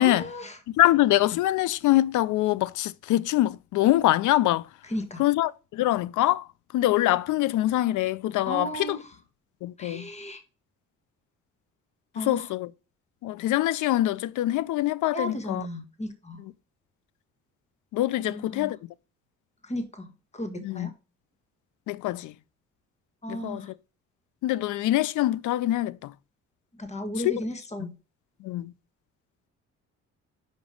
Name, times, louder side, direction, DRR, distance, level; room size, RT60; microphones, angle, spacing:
voice 1, 0.0-0.6 4.8-5.2 8.5-9.2 9.8-10.4 12.2-12.5 15.1-16.4 18.2-18.7 19.6-20.9 23.2-23.7 26.7-27.9, equal, 20° left, 1.6 m, -35 dB
voice 2, 0.8-4.7 5.2-6.5 6.7-9.0 9.6-10.1 12.2-12.7 13.2-15.6 17.9-18.8 20.6-20.9 21.9-22.3 23.3-23.6 24.4-26.1 27.2-27.3 28.4-28.7, left 15 dB, 80° left, 0.5 m, -24 dB
5.2 x 5.1 x 5.1 m
cardioid pair, 90°, 30 cm